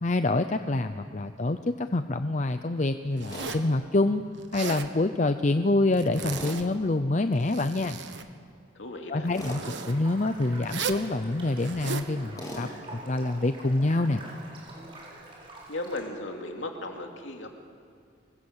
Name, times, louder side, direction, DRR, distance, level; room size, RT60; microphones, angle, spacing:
voice 1, 0.0-4.2 4.5-8.0 9.1-9.6 9.9-14.2, left 2 dB, 40° left, 9 dB, 0.6 m, -26 dB
Zipper (clothing), 3.2-3.7 4.4-4.9 5.9-6.7 7.3-8.3 9.4-9.9 10.6-11.1 11.6-12.1, right 6 dB, 70° right, 1.3 m, -36 dB
Tools, 3.3-3.6 6.3-6.6 9.3-9.6 12.4-12.7, left 1 dB, 20° left, 4.6 m, -38 dB
voice 2, 8.7-9.3 15.7-17.6, left 2 dB, 85° left, 3 dB, 2.7 m, -36 dB
sound 1, 9.2-16.0, right 2 dB, 30° right, 6.2 m, -46 dB
25.0 x 20.5 x 8.1 m, 2.4 s
head